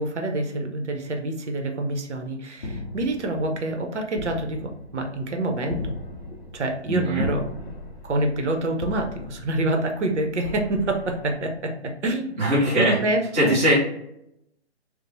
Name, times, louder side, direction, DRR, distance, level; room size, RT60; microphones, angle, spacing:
voice 1, 0.0-5.9 6.5-7.4 8.1-11.7 12.0-12.3 12.7-13.8, right 2 dB, 80° right, 3 dB, 0.7 m, -27 dB
sound 1, 2.6-11.9, left 2 dB, 40° left, 0.5 m, -37 dB
voice 2, 6.9-7.3 12.4-13.0 13.3-13.8, right 1 dB, 15° right, -8 dB, 0.6 m, -20 dB
3.0 x 2.0 x 2.6 m, 0.78 s
hypercardioid pair, 150°, 34 cm